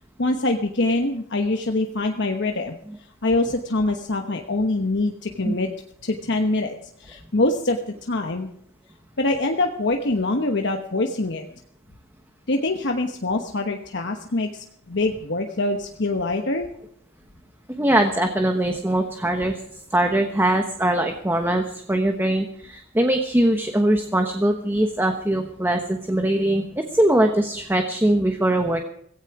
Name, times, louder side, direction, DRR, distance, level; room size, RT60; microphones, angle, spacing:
voice 1, 0.2-2.7 3.2-5.7 6.0-6.7 7.0-8.5 9.2-11.4 12.5-16.7, left 2 dB, 60° left, 4 dB, 1.2 m, -24 dB
voice 2, 17.8-19.6 19.9-28.8, right 1 dB, 10° right, 5 dB, 1.1 m, -21 dB
16.5 x 16.5 x 4.8 m, 0.69 s
head